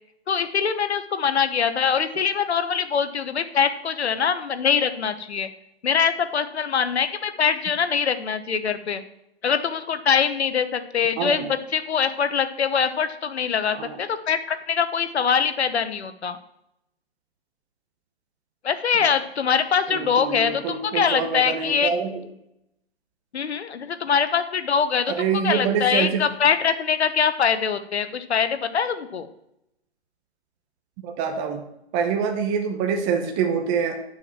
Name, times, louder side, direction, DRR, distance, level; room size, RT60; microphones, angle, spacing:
voice 1, 0.3-5.5 5.8-9.0 9.4-16.4 18.6-21.9 23.3-25.1 25.4-29.3, left 7 dB, 80° left, 11 dB, 1.1 m, -23 dB
voice 2, 11.2-11.5 13.7-14.0 19.9-22.2 25.1-26.2 31.0-31.6 31.9-34.2, right 6 dB, 25° right, 4 dB, 1.0 m, -25 dB
10.5 x 6.3 x 4.4 m, 0.81 s
hypercardioid pair, 140°, 32 cm